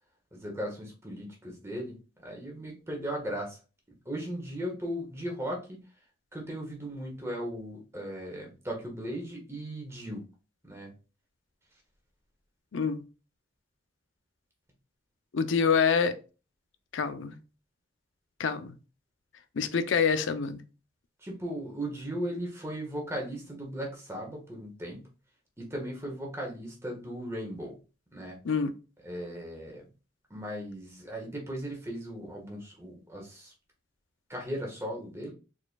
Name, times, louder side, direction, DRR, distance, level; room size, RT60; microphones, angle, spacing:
voice 1, 0.3-3.6 4.0-5.8 6.3-10.2 10.6-10.9 21.2-25.0 25.6-27.7 28.1-28.4 29.0-29.8 30.3-33.5 34.3-35.3, equal, 15° right, 1.4 m, -37 dB
voice 2, 12.7-13.0 15.3-16.2 16.9-17.4 18.4-18.7 19.6-20.6 28.4-28.7, left 6 dB, 90° left, 0.5 m, -26 dB
4.6 x 4.4 x 2.3 m
head